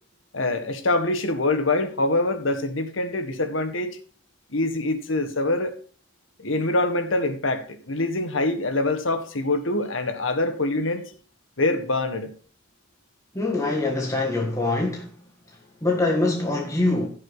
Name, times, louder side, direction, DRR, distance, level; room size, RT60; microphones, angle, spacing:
voice 1, 0.3-4.0 4.5-5.8 6.4-11.1 11.6-12.3, left 2 dB, 85° left, 1.6 m, -25 dB
voice 2, 13.3-15.2 15.8-17.1, left 2 dB, 15° left, 1.6 m, -24 dB
15.5 x 6.5 x 4.0 m
head